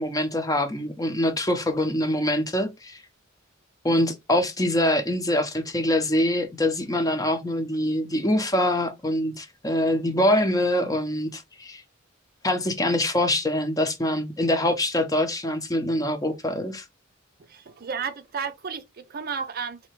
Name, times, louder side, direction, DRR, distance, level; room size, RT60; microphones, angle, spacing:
voice 1, 0.0-3.0 3.8-11.8 12.4-16.8, left 1 dB, 20° left, 0.8 m, -24 dB
voice 2, 17.5-19.8, right 6 dB, 50° right, 0.5 m, -33 dB
4.0 x 2.9 x 4.5 m
head